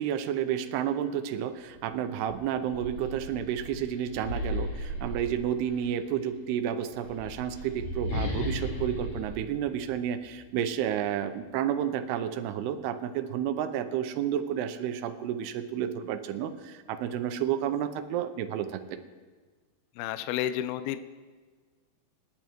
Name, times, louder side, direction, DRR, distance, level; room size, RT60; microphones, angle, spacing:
voice 1, 0.0-19.0, right 9 dB, 80° right, 9 dB, 2.6 m, -31 dB
sound 1, 1.7-1.9 2.3-5.9 6.8-10.5, left 1 dB, 50° left, 2.6 m, -36 dB
voice 2, 20.0-21.0, left 11 dB, 80° left, 11 dB, 2.3 m, -31 dB
27.5 x 10.5 x 3.1 m, 1.4 s
omnidirectional pair, 5.0 m